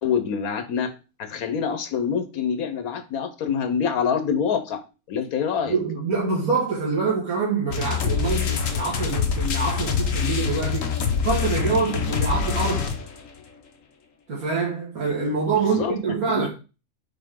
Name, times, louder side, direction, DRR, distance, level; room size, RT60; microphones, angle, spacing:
voice 1, 0.0-4.8 5.1-5.8 15.4-15.9 16.3-16.5, left 7 dB, 85° left, 1.4 m, -26 dB
voice 2, 5.7-10.9 11.2-12.9 14.3-16.5, right 4 dB, 85° right, 2.2 m, -25 dB
sound 1, 7.7-13.3, left 6 dB, 65° left, 1.3 m, -25 dB
5.7 x 4.8 x 3.7 m
omnidirectional pair, 1.5 m